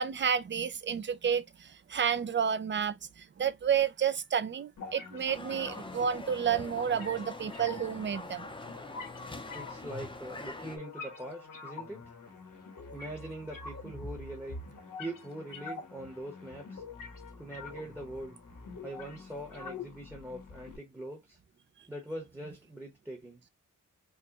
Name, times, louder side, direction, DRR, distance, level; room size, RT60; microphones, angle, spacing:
voice 1, 0.0-8.5, right 8 dB, 35° right, 0.4 m, -30 dB
sound 1, 4.8-20.8, left 4 dB, 75° left, 1.2 m, -46 dB
sound 2, 5.3-10.8, left 2 dB, 15° left, 0.6 m, -44 dB
voice 2, 9.5-12.0 12.9-14.6 15.0-16.8 17.4-18.4 18.8-21.4 21.9-23.4, right 1 dB, 5° right, 0.9 m, -42 dB
4.6 x 2.2 x 2.8 m
wide cardioid pair, 120°, 33 cm